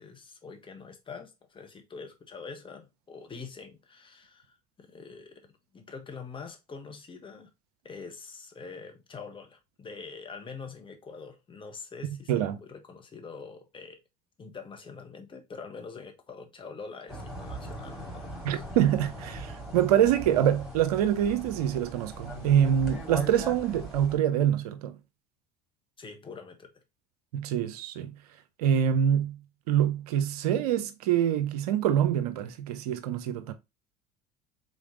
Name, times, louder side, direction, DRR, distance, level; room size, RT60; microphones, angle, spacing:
voice 1, 0.0-5.4 5.7-7.5 7.8-14.0 14.4-18.6 26.0-26.8, left 5 dB, 25° left, 1.2 m, -45 dB
sound 1, 17.1-24.2, right 1 dB, ahead, 2.5 m, -40 dB
voice 2, 18.4-25.0 27.3-28.1 28.6-29.4 29.7-33.5, right 10 dB, 75° right, 0.6 m, -25 dB
3.9 x 3.1 x 3.8 m
hypercardioid pair, 70°, 20 cm